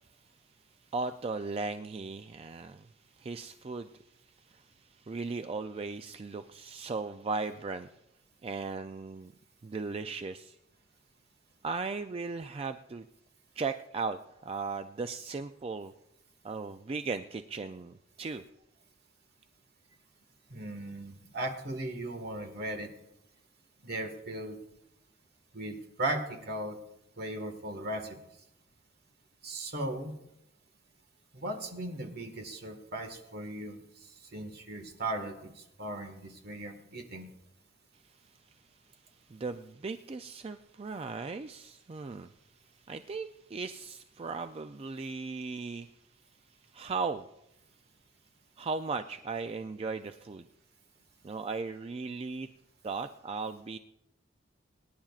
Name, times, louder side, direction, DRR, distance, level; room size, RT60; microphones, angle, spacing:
voice 1, 0.9-2.9 3.2-3.9 4.5-7.9 8.4-9.3 9.6-10.6 11.6-13.1 13.6-15.9 16.4-18.4 39.3-42.3 42.9-45.9 46.7-47.3 48.6-50.5 51.2-52.5 52.8-53.8, right 4 dB, 30° right, 8 dB, 0.4 m, -37 dB
voice 2, 20.5-22.9 23.8-24.6 25.5-26.8 27.2-28.2 29.4-30.1 31.3-33.8 34.3-35.5 35.8-37.3, right 1 dB, 55° right, 5 dB, 1.7 m, -37 dB
25.5 x 10.5 x 2.4 m, 0.86 s
head